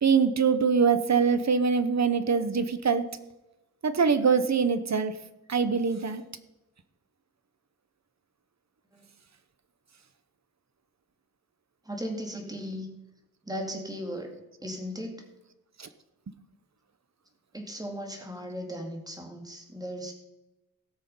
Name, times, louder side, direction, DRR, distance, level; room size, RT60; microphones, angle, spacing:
voice 1, 0.0-3.2 3.8-5.2 5.5-6.2 15.8-15.9, right 5 dB, 50° right, 12 dB, 0.9 m, -24 dB
voice 2, 11.8-12.9 13.4-14.3 14.6-15.2 17.5-20.1, equal, 10° right, 3 dB, 2.1 m, -37 dB
17.0 x 6.4 x 5.4 m, 0.96 s
wide cardioid pair, 130°, 35 cm